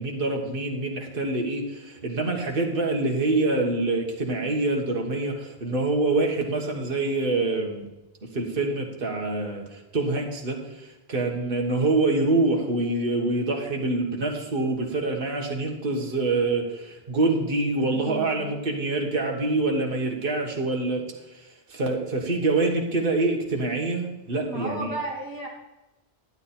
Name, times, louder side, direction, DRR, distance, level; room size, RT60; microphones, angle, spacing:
voice 1, 0.0-7.8 8.3-24.9, right 2 dB, 60° right, 1 dB, 1.6 m, -26 dB
voice 2, 17.8-18.6 24.4-25.5, right 1 dB, 20° left, -3 dB, 2.8 m, -34 dB
11.5 x 9.5 x 4.3 m, 1.0 s
omnidirectional pair, 1.1 m